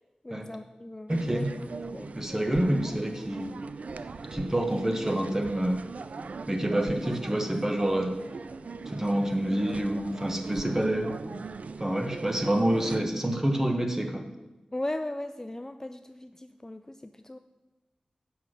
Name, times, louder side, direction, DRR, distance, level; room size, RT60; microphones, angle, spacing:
voice 1, 0.2-1.4 1.9-2.2 6.9-7.0 14.7-17.4, left 1 dB, 20° left, 8 dB, 0.4 m, -37 dB
voice 2, 1.1-1.5 2.1-3.5 4.3-5.8 6.5-8.1 8.9-11.1 11.8-14.2, right 1 dB, 20° right, 4 dB, 1.3 m, -27 dB
sound 1, 1.1-13.0, right 4 dB, 75° right, 0.4 m, -40 dB
7.9 x 5.9 x 6.4 m, 1.1 s
wide cardioid pair, 60°, 2 cm